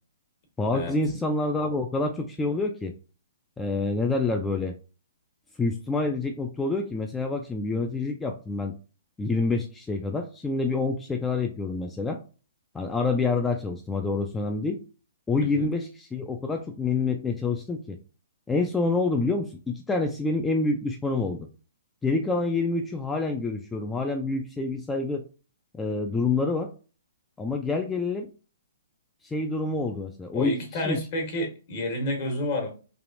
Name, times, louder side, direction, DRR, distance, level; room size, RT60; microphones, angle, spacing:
voice 1, 0.6-2.9 3.6-4.7 5.6-8.7 9.2-12.2 12.7-14.8 15.3-18.0 18.5-21.5 22.0-25.2 25.7-26.7 27.4-28.3 29.2-31.0, left 3 dB, 10° left, 4 dB, 0.3 m, -27 dB
voice 2, 30.3-32.7, left 1 dB, 45° left, 3 dB, 1.3 m, -29 dB
3.3 x 2.4 x 2.5 m, 0.36 s
hypercardioid pair, 130°, 0 cm